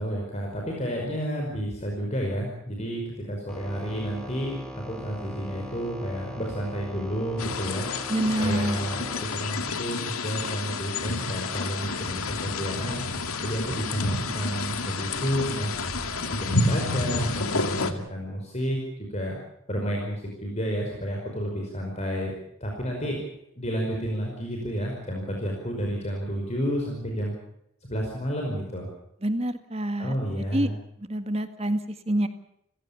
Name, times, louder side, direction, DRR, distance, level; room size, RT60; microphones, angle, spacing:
voice 1, 0.0-7.9 8.4-13.0 13.4-15.7 16.4-19.4 19.7-22.3 22.6-23.2 23.6-27.3 27.8-28.9 30.0-30.8, equal, 30° left, 0 dB, 5.2 m, -31 dB
sound 1, 3.5-9.3, equal, 5° left, 3.8 m, -40 dB
sound 2, 7.4-17.9, left 3 dB, 90° left, 2.3 m, -30 dB
voice 2, 8.1-8.8 29.2-30.1 30.5-30.7 31.0-32.3, right 1 dB, 30° right, 9 dB, 1.8 m, -27 dB
sound 3, 11.8-17.9, equal, 45° left, 6.3 m, -40 dB
30.0 x 16.5 x 7.1 m, 0.75 s
head